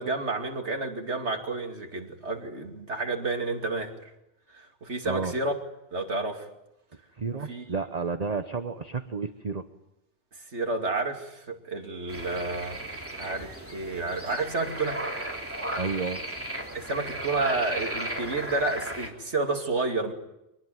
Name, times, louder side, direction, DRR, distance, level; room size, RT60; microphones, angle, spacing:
voice 1, 0.0-4.1 4.5-5.5 5.9-6.5 7.5-7.6 10.5-12.8 13.2-15.0 16.7-20.1, right 3 dB, 65° right, 3 dB, 3.0 m, -30 dB
voice 2, 7.2-9.6 15.8-16.2, right 4 dB, 35° right, 8 dB, 1.0 m, -31 dB
sound 1, 12.1-19.1, right 1 dB, 10° right, 3.3 m, -35 dB
24.5 x 19.0 x 9.3 m, 0.89 s
omnidirectional pair, 1.2 m